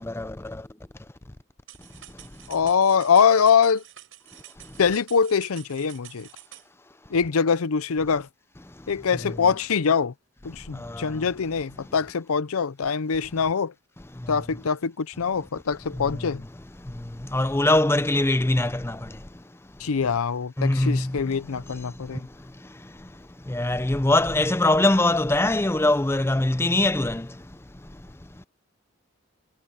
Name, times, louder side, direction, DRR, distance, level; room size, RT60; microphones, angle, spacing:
voice 1, 0.1-0.6 10.9-11.0 17.3-19.0 20.6-21.1 23.5-27.3, left 2 dB, 10° left, 0.5 m, -22 dB
sound 1, 1.7-6.7, right 12 dB, 65° right, 5.8 m, -48 dB
voice 2, 2.5-3.8 4.8-6.3 7.1-8.3 8.9-10.1 10.4-13.7 14.3-16.4 19.8-22.3, left 6 dB, 85° left, 0.6 m, -23 dB
head